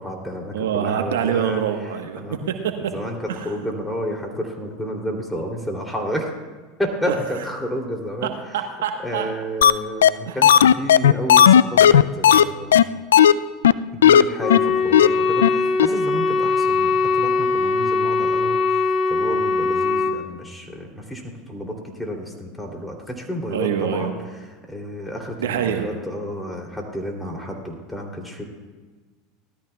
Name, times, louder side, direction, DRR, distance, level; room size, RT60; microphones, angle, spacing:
voice 1, 0.0-1.6 2.2-2.4 2.9-6.3 6.8-8.3 9.0-12.8 13.9-24.1 24.7-28.4, equal, 5° left, 1 dB, 2.9 m, -30 dB
voice 2, 0.5-2.9 3.3-3.5 7.1-7.2 8.2-9.3 10.3-10.4 23.5-24.1 25.4-25.9, right 8 dB, 85° right, 5 dB, 1.1 m, -25 dB
sound 1, 9.6-9.7 10.0-10.1 10.4-12.4 12.7-12.8 13.1-13.3 13.6-13.7 14.0-14.2 14.5-14.6 14.9-15.1 15.4-15.5 15.8-15.9, left 9 dB, 90° left, 0.3 m, -12 dB
Wind instrument woodwind instrument, 14.4-20.2, left 4 dB, 40° left, 1.9 m, -21 dB
18.5 x 13.0 x 2.3 m, 1.4 s
hypercardioid pair, 95°, 0 cm